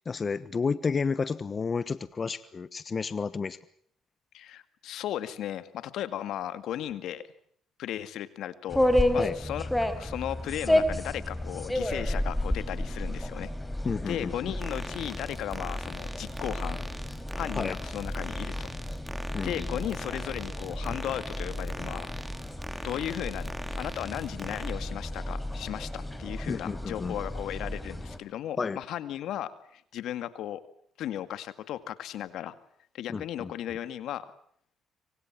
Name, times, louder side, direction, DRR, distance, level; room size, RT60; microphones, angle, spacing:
voice 1, 0.0-3.6 9.2-9.3 13.8-14.5 17.5-17.8 19.3-19.8 26.5-27.1 28.6-28.8 33.1-33.5, left 5 dB, 40° left, 15 dB, 1.3 m, -31 dB
voice 2, 4.3-7.3 7.8-8.9 9.1-9.7 10.0-13.5 14.1-16.8 17.4-18.7 19.4-22.1 22.8-23.5 23.8-30.6 31.0-32.5 32.9-34.3, left 11 dB, 75° left, 13 dB, 2.1 m, -36 dB
sound 1, 8.7-28.2, left 1 dB, 5° left, 4.6 m, -32 dB
sound 2, 14.6-24.7, right 1 dB, 15° right, 4.4 m, -42 dB
26.5 x 25.5 x 7.6 m, 0.65 s
supercardioid pair, 70°, 0 cm